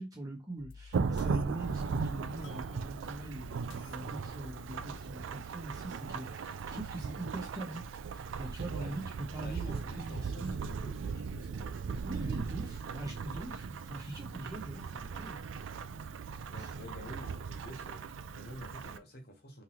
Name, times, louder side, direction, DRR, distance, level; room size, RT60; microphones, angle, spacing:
voice 1, 0.0-7.8 8.1-9.0 9.3-10.6 10.8-10.9 12.0-15.4 16.6-16.7, right 2 dB, 20° right, 1.4 m, -42 dB
sound 1, 0.6-6.2, left 5 dB, 70° left, 0.4 m, -54 dB
Thunderstorm / Rain, 0.9-19.0, right 5 dB, 80° right, 0.4 m, -38 dB
voice 2, 8.7-9.0 9.4-12.0 16.5-19.6, equal, 55° left, 1.1 m, -49 dB
3.7 x 3.1 x 2.9 m
head